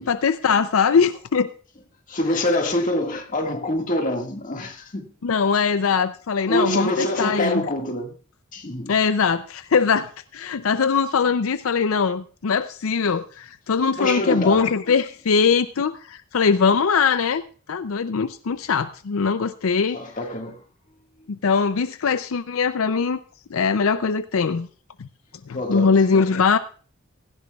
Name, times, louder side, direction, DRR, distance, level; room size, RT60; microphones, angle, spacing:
voice 1, 0.1-1.5 5.2-7.6 8.9-20.0 21.3-23.2 23.5-24.7 25.0-25.1 25.5-26.6, left 5 dB, 80° left, 0.5 m, -21 dB
voice 2, 2.1-5.1 6.4-8.1 8.5-9.0 14.0-14.7 19.9-20.6 25.5-26.2, left 1 dB, 40° left, 1.9 m, -25 dB
16.5 x 14.5 x 2.4 m
head